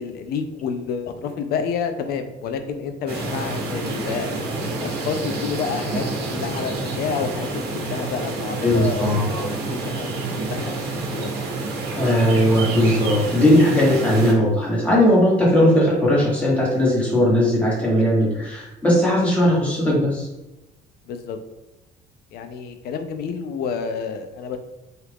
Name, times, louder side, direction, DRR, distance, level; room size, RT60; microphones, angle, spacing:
voice 1, 0.0-4.3 4.7-10.1 10.5-10.7 11.1-11.3 18.2-18.3 21.1-21.4 22.3-24.6, left 6 dB, 65° left, 8 dB, 0.4 m, -29 dB
sound 1, 3.1-14.3, right 3 dB, 70° right, 0.8 m, -28 dB
voice 2, 8.6-9.5 12.0-20.3, equal, 5° left, -7 dB, 1.4 m, -18 dB
2.8 x 2.4 x 3.4 m, 1.0 s
cardioid pair, 110°, 17 cm